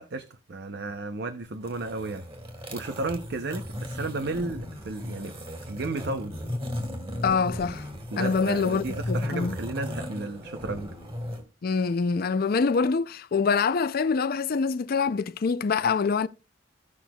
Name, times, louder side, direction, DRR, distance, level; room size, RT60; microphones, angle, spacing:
voice 1, 0.0-2.3 2.7-5.3 5.7-6.4 8.1-10.9, right 3 dB, 60° right, 0.7 m, -33 dB
sound 1, 1.5-11.4, left 1 dB, 30° right, 2.2 m, -36 dB
voice 2, 7.2-7.9 8.2-9.6 11.6-16.3, left 5 dB, 50° left, 0.4 m, -25 dB
16.5 x 5.9 x 2.3 m
head